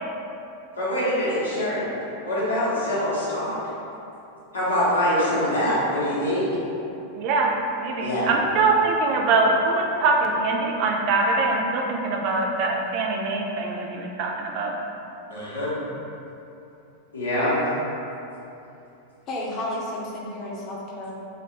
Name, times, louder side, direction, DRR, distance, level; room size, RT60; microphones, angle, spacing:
voice 1, 0.8-1.8 2.2-3.6 4.5-6.5 8.0-8.3 15.3-15.7 17.1-17.6, left 1 dB, 80° left, -10 dB, 1.0 m, -24 dB
voice 2, 7.2-7.5 7.8-14.7, right 3 dB, 45° right, 1 dB, 0.3 m, -23 dB
voice 3, 19.3-21.1, left 1 dB, 35° left, -3 dB, 0.5 m, -32 dB
3.2 x 2.6 x 2.9 m, 2.8 s
figure-of-eight pair, 90°, 0 cm